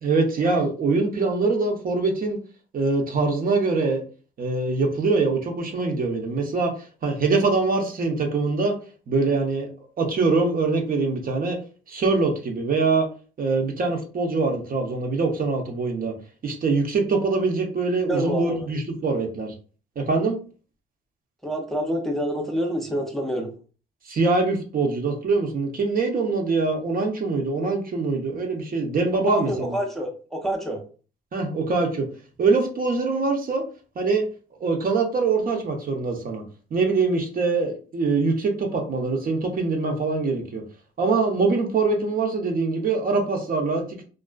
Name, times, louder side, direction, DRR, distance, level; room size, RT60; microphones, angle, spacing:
voice 1, 0.0-2.4 2.7-4.0 4.4-6.7 7.0-8.8 9.1-11.6 11.9-13.1 13.4-16.1 16.4-19.5 20.0-20.4 24.0-29.8 31.3-32.1 32.4-33.6 34.0-34.3 34.6-36.4 36.7-40.6 41.0-44.0, right 3 dB, 45° right, 2 dB, 0.6 m, -23 dB
voice 2, 18.0-18.6 21.4-23.5 29.3-30.8, equal, ahead, -1 dB, 0.6 m, -27 dB
2.4 x 2.3 x 2.3 m, 0.38 s
cardioid pair, 90°, 20 cm